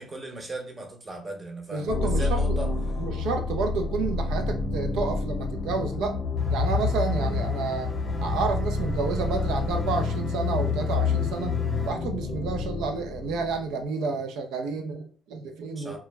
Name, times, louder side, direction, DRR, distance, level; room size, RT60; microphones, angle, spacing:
voice 1, 0.0-2.7 15.8-16.0, right 1 dB, 30° right, 0.7 m, -37 dB
voice 2, 1.7-2.6 3.0-6.2 6.5-7.9 8.2-16.0, right 4 dB, 90° right, 0.4 m, -30 dB
sound 1, 1.9-13.7, left 4 dB, 75° left, 0.5 m, -28 dB
sound 2, 6.4-11.9, left 1 dB, 20° left, 0.6 m, -36 dB
2.1 x 2.0 x 3.2 m
cardioid pair, 90°, 0 cm